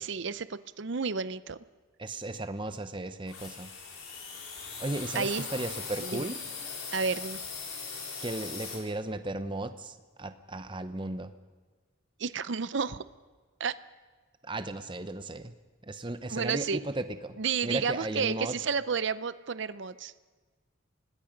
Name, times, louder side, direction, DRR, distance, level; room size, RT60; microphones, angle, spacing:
voice 1, 0.0-1.6 5.1-5.5 6.0-6.3 6.9-7.4 12.2-13.0 13.6-13.7 16.3-16.8 17.4-20.1, right 5 dB, 55° right, 16 dB, 0.6 m, -31 dB
voice 2, 2.0-3.7 4.8-6.4 8.2-11.3 14.4-15.5 15.8-17.4 17.6-18.6, right 2 dB, 25° right, 10 dB, 0.9 m, -35 dB
sound 1, 3.3-8.8, left 5 dB, 90° left, 5.2 m, -40 dB
26.0 x 19.5 x 5.2 m, 1.4 s
head